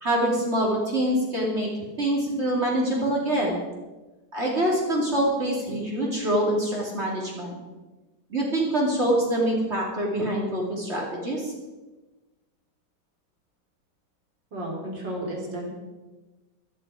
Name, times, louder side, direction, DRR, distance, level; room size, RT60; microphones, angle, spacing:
voice 1, 0.0-1.7 2.0-3.6 4.3-7.6 8.3-11.5, right 1 dB, 35° right, -3 dB, 3.0 m, -25 dB
voice 2, 14.5-15.7, right 1 dB, 85° right, -1 dB, 4.0 m, -32 dB
14.0 x 12.5 x 4.9 m, 1.2 s
omnidirectional pair, 1.9 m